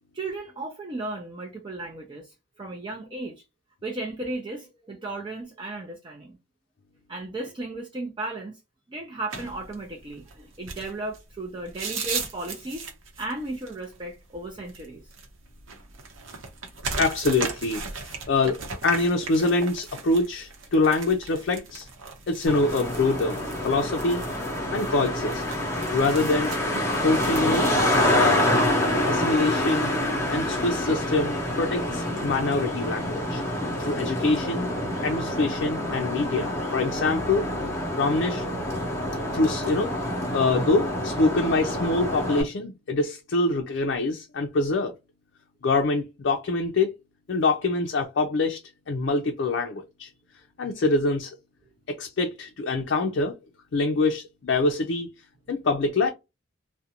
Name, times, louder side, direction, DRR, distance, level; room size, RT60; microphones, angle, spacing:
voice 1, 0.1-2.3 2.6-3.4 3.8-6.4 7.1-8.6 8.9-12.9 13.2-15.1, right 2 dB, 25° right, 0.4 m, -35 dB
sound 1, 9.3-28.0, right 4 dB, 85° right, 0.7 m, -38 dB
voice 2, 17.0-21.9 22.3-23.4 23.6-24.2 24.7-25.4 25.9-26.5 27.0-27.7 28.1-28.5 29.1-29.9 30.3-33.4 33.8-34.7 35.0-37.4 38.0-38.5 39.3-39.9 40.3-44.9 45.6-46.9 47.3-48.6 48.9-50.1 50.6-51.4 51.9-53.4 53.7-55.1 55.5-56.1, left 3 dB, 65° left, 0.4 m, -25 dB
Traffic noise roadway noise, 22.5-42.4, left 1 dB, 15° left, 0.7 m, -27 dB
2.5 x 2.1 x 2.8 m
head